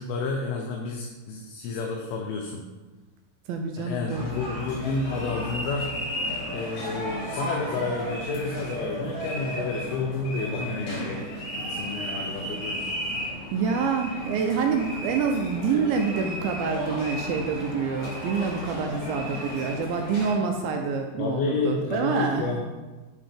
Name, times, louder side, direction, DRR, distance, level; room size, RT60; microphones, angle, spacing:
voice 1, 0.0-2.7 3.8-5.9 6.5-11.3 11.6-13.0 21.2-22.6, left 3 dB, 85° left, 1 dB, 2.5 m, -30 dB
voice 2, 3.5-4.4 13.5-22.6, right 5 dB, 80° right, 3 dB, 2.2 m, -27 dB
sound 1, 4.1-20.3, equal, 45° left, 2.6 m, -34 dB
9.6 x 4.0 x 3.3 m, 1.2 s
omnidirectional pair, 4.5 m